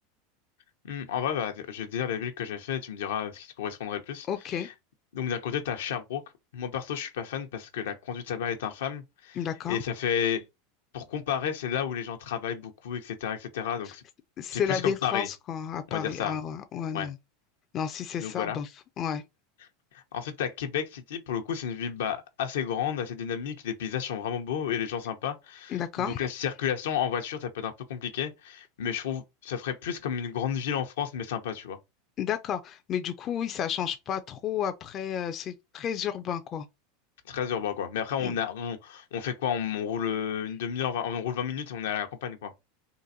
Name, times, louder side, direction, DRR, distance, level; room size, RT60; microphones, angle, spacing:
voice 1, 0.8-4.7 5.1-6.2 6.5-9.4 9.7-10.4 10.9-14.0 14.5-15.3 15.9-16.4 16.9-17.1 18.2-18.6 19.9-31.8 37.3-42.7, left 8 dB, 80° left, 0.8 m, -32 dB
voice 2, 4.3-4.7 9.4-9.8 13.9-14.0 14.4-17.2 17.7-18.7 19.0-19.2 25.7-26.2 32.2-36.7 38.2-38.4, left 8 dB, 35° left, 0.4 m, -32 dB
3.8 x 2.5 x 2.7 m
supercardioid pair, 120°, 0 cm